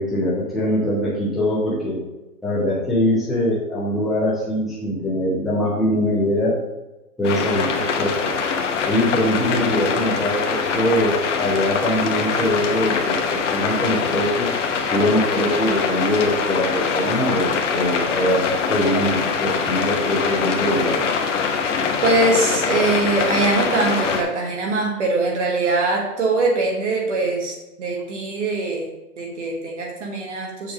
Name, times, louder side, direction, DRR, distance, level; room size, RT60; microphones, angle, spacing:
voice 1, 0.0-2.0 2.4-6.5 7.2-8.3 8.9-14.5 14.9-21.0, left 1 dB, ahead, -8 dB, 0.3 m, -22 dB
sound 1, 7.2-24.2, left 5 dB, 50° left, 1.0 m, -23 dB
voice 2, 22.0-28.9 29.2-30.7, right 2 dB, 50° right, 0 dB, 1.3 m, -22 dB
7.0 x 3.5 x 5.7 m, 1.1 s
hypercardioid pair, 160°, 47 cm